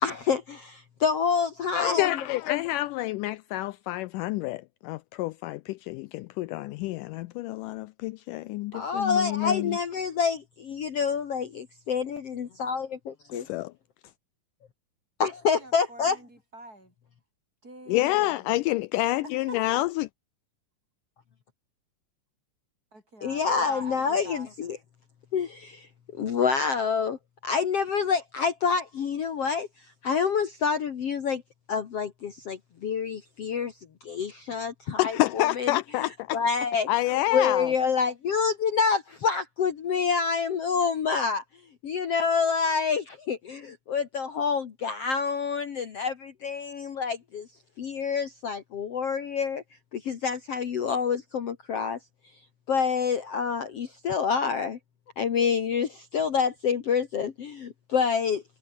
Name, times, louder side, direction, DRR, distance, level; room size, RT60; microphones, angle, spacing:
voice 1, 0.0-2.1 8.7-13.5 15.2-16.2 23.2-24.8 25.3-25.9 26.2-27.2 27.4-29.7 30.0-31.4 31.7-33.7 34.0-36.9 37.3-41.4 41.8-47.5 47.8-49.6 49.9-52.0 52.7-54.8 55.2-58.4, left 6 dB, 50° left, 2.4 m, -27 dB
voice 2, 1.7-9.8 13.3-13.7 17.9-20.1 35.0-36.4 36.9-37.7, left 17 dB, 80° left, 2.0 m, -28 dB
voice 3, 15.6-16.9 17.6-18.7 19.2-19.6 22.9-24.5, right 1 dB, 25° right, 8.5 m, -45 dB
omnidirectional pair, 4.0 m